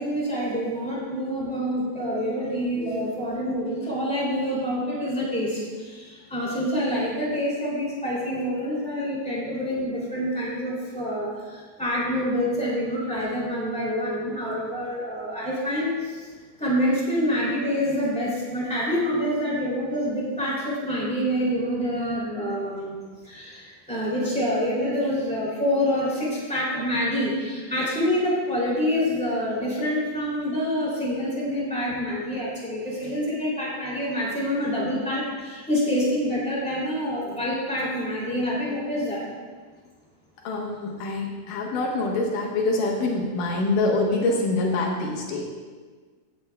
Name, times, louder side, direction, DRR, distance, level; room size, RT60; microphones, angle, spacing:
voice 1, 0.0-16.3 16.6-39.2, equal, 5° left, -7 dB, 1.4 m, -27 dB
voice 2, 40.4-45.4, left 2 dB, 70° left, -1 dB, 2.0 m, -25 dB
16.5 x 8.1 x 2.3 m, 1.5 s
omnidirectional pair, 5.2 m